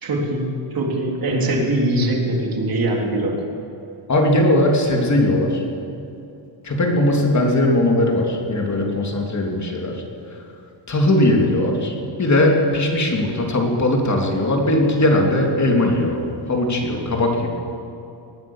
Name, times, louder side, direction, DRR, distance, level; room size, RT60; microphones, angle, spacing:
voice 1, 0.0-3.5, right 1 dB, 45° right, 0 dB, 3.5 m, -22 dB
voice 2, 4.1-5.6 6.6-10.0 10.9-11.9 12.2-16.2 16.5-17.5, left 1 dB, 35° left, 1 dB, 3.2 m, -19 dB
20.0 x 9.5 x 7.4 m, 2.7 s
cardioid pair, 90°, 50 cm